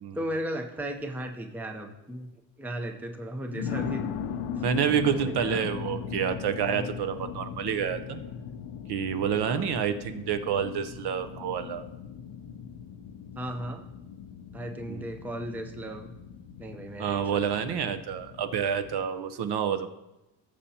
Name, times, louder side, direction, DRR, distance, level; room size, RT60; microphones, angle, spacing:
voice 1, 0.1-2.3 2.6-4.1 5.2-5.7 9.4-9.7 13.4-13.8 14.5-16.1 16.6-17.8, right 1 dB, 5° right, 5 dB, 0.6 m, -36 dB
sound 1, 0.8-1.0 1.7-1.8 3.5-19.1, left 7 dB, 70° left, 0.8 m, -39 dB
voice 2, 4.6-8.2 8.9-11.8 14.9-15.0 17.0-19.9, right 8 dB, 50° right, 10 dB, 0.8 m, -28 dB
18.0 x 7.0 x 2.8 m, 0.97 s
cardioid pair, 115°, 50 cm